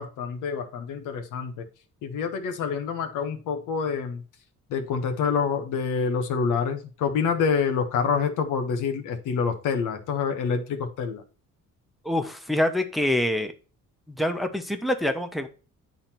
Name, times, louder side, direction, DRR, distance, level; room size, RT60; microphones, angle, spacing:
voice 1, 0.0-1.6 2.0-4.2 4.7-11.2, left 6 dB, 85° left, 1.3 m, -27 dB
voice 2, 12.0-13.5 14.1-15.5, left 1 dB, ahead, 1.0 m, -25 dB
8.8 x 4.1 x 4.3 m
cardioid pair, 90°, 30 cm